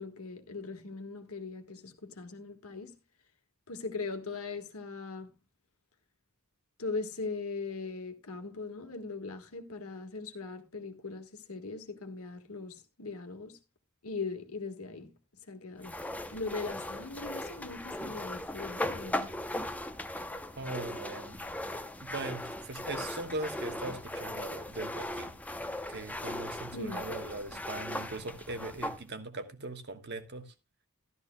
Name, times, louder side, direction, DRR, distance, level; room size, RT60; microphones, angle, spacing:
voice 1, 0.0-2.9 3.7-5.3 6.8-13.6 14.0-15.1 15.5-16.0 16.3-19.3 26.7-27.0, left 3 dB, 80° left, 1.6 m, -40 dB
sound 1, 15.8-29.0, left 1 dB, 5° left, 0.7 m, -38 dB
voice 2, 20.6-21.4 22.0-25.3 25.9-30.5, right 2 dB, 50° right, 1.3 m, -40 dB
13.0 x 12.5 x 2.2 m
head